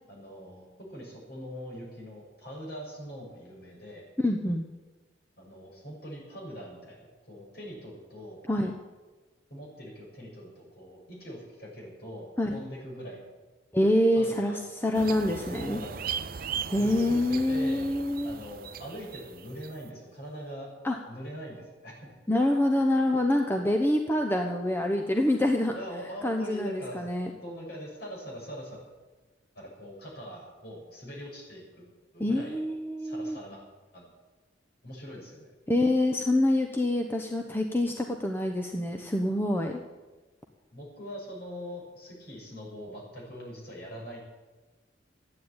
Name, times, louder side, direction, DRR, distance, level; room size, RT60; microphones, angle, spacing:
voice 1, 0.1-4.0 5.4-8.4 9.5-13.2 14.1-14.6 15.6-16.1 16.8-17.9 18.2-20.7 21.1-22.1 25.7-27.0 27.4-28.8 29.6-32.6 33.0-33.6 33.9-34.1 34.8-35.5 40.7-44.2, equal, 55° left, -2 dB, 6.9 m, -42 dB
voice 2, 4.2-4.7 8.5-8.7 12.4-12.6 13.7-15.8 16.7-18.4 20.8-21.0 22.3-25.7 26.2-27.3 32.2-33.4 35.7-39.8, left 1 dB, 10° left, 3 dB, 0.9 m, -26 dB
sound 1, 14.9-19.8, right 7 dB, 50° right, 0.6 m, -38 dB
14.0 x 9.6 x 8.8 m, 1.2 s
head